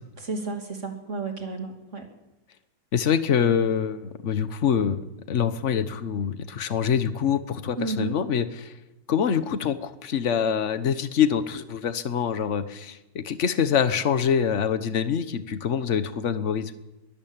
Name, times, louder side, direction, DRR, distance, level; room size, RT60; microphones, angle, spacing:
voice 1, 0.2-2.1 7.8-8.2, right 3 dB, 40° right, 4 dB, 3.1 m, -32 dB
voice 2, 2.9-5.0 5.3-8.7 9.1-16.7, left 7 dB, 45° left, 12 dB, 1.3 m, -25 dB
22.5 x 12.5 x 9.0 m, 1.0 s
omnidirectional pair, 2.0 m